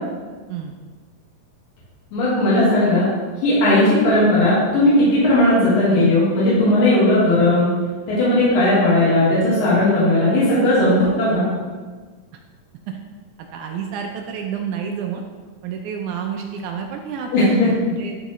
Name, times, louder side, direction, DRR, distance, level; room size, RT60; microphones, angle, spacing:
voice 1, 2.1-3.1 3.4-7.7 8.1-11.5 17.3-17.7, left 1 dB, 85° left, -9 dB, 3.4 m, -16 dB
voice 2, 13.5-15.2 15.6-18.2, right 7 dB, 80° right, 3 dB, 1.8 m, -29 dB
11.0 x 4.0 x 3.0 m, 1.4 s
omnidirectional pair, 3.9 m